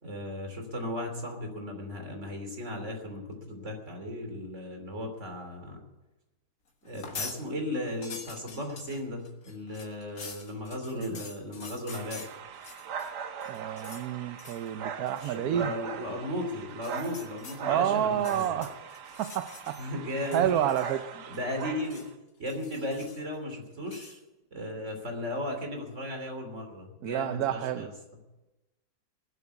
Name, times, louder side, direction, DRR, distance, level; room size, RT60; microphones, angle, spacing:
voice 1, 0.0-5.8 6.8-12.2 15.2-18.5 19.8-20.6 21.3-22.0 22.4-24.2 24.5-27.9, left 1 dB, 45° right, 4 dB, 3.4 m, -36 dB
sound 1, 6.9-7.4 7.8-13.1 13.4-14.1 14.4-14.7 15.1-15.4 16.7-17.6 18.1-19.9 20.2-21.1 21.3-22.1 22.5-23.3 23.9-24.2, left 4 dB, 60° left, 2.1 m, -45 dB
sound 2, 11.9-22.1, right 7 dB, 90° right, 1.6 m, -41 dB
voice 2, 13.5-15.7 17.7-18.8 19.2-19.8 20.3-21.0 27.0-27.9, right 11 dB, 70° right, 11 dB, 1.1 m, -29 dB
19.0 x 8.3 x 8.1 m, 1.0 s
omnidirectional pair, 1.7 m